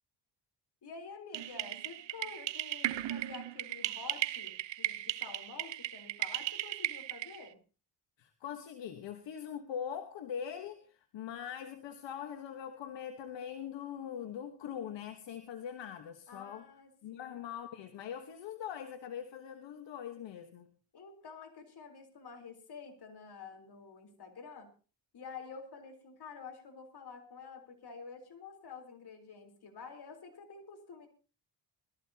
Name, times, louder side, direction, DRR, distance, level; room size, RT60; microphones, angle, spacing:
voice 1, 0.8-7.6 16.3-17.5 20.9-24.7 25.1-31.1, left 5 dB, 65° left, 4 dB, 4.0 m, -49 dB
sound 1, 1.3-7.5, right 14 dB, 80° right, 0.8 m, -37 dB
voice 2, 8.2-16.6 17.0-20.7, left 8 dB, 85° left, 7 dB, 1.3 m, -42 dB
21.0 x 14.0 x 2.9 m, 0.36 s
cardioid pair, 70°, 43 cm